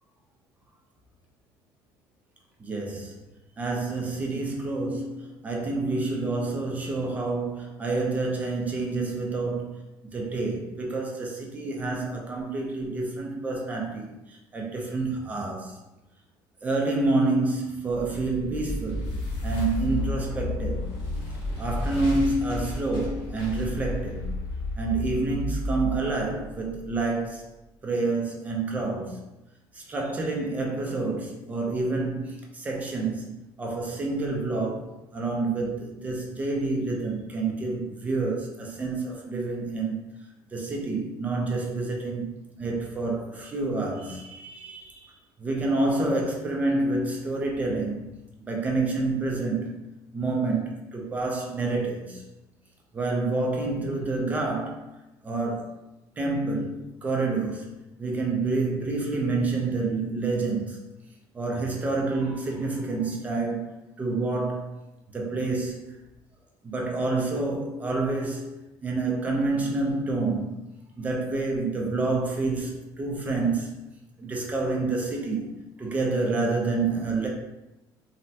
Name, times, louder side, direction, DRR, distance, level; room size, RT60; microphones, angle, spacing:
voice 1, 2.6-3.2 3.6-15.8 16.6-19.1 19.4-20.9 21.6-24.3 24.8-27.5 27.8-29.2 29.7-42.3 42.6-45.1 45.4-48.1 48.4-49.8 50.1-52.2 52.9-54.8 55.2-55.8 56.2-60.8 61.3-64.8 65.1-66.0 66.6-68.5 68.8-70.6 71.0-73.8 74.2-77.3, right 3 dB, 15° right, -1 dB, 0.5 m, -28 dB
sound 1, 17.9-27.1, left 1 dB, 90° left, 0.8 m, -32 dB
3.1 x 2.1 x 2.7 m, 0.96 s
cardioid pair, 165°, 9 cm